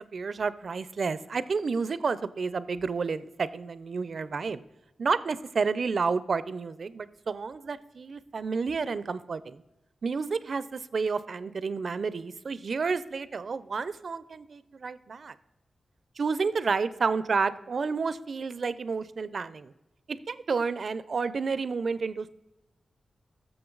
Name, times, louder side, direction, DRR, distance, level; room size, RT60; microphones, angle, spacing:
voice 1, 0.0-4.6 5.0-9.6 10.0-15.3 16.2-19.7 20.1-22.3, right 4 dB, 60° right, 16 dB, 0.5 m, -30 dB
14.0 x 6.7 x 3.9 m, 0.97 s
wide cardioid pair, 90°, 0 cm